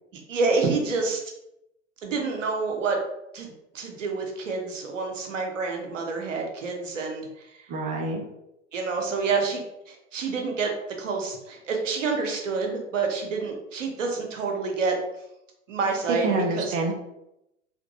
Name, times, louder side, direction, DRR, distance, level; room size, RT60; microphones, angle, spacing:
voice 1, 0.3-1.2 2.0-3.0 3.3-7.3 8.7-10.7 11.0-14.9 15.7-16.3 16.5-16.7, right 4 dB, 75° right, 2 dB, 0.8 m, -28 dB
voice 2, 7.7-8.2 16.1-16.9, right 2 dB, 20° right, 1 dB, 0.5 m, -26 dB
2.9 x 2.5 x 2.7 m, 0.85 s
figure-of-eight pair, 90°, 38 cm